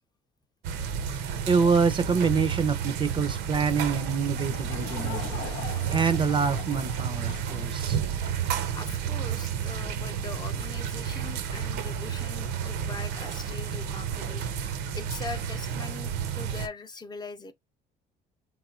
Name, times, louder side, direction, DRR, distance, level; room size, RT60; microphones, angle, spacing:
sound 1, 0.6-16.7, right 8 dB, 85° right, 0.6 m, -31 dB
voice 1, 1.5-5.4 5.9-8.0, right 5 dB, 30° right, 0.4 m, -26 dB
Laughter / Crowd, 4.3-8.5, left 13 dB, 85° left, 0.4 m, -42 dB
voice 2, 8.7-17.5, left 4 dB, 25° left, 0.5 m, -41 dB
3.7 x 3.0 x 2.4 m
cardioid pair, 110°, 17 cm